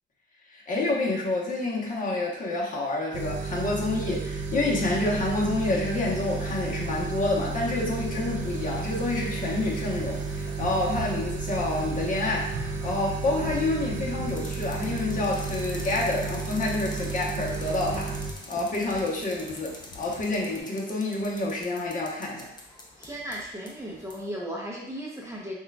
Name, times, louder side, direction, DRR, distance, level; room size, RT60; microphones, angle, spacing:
voice 1, 0.5-18.2 18.5-22.5, left 2 dB, 40° left, -3 dB, 1.1 m, -28 dB
sound 1, 3.1-18.3, right 4 dB, 65° right, 0.5 m, -32 dB
Wind / Ocean, 4.8-20.6, left 3 dB, 70° left, 0.7 m, -46 dB
sound 2, 14.3-24.3, left 1 dB, 20° left, 0.7 m, -46 dB
voice 2, 23.0-25.5, equal, 15° right, -3 dB, 0.8 m, -36 dB
5.9 x 2.4 x 2.3 m, 0.86 s
cardioid pair, 90°, 20 cm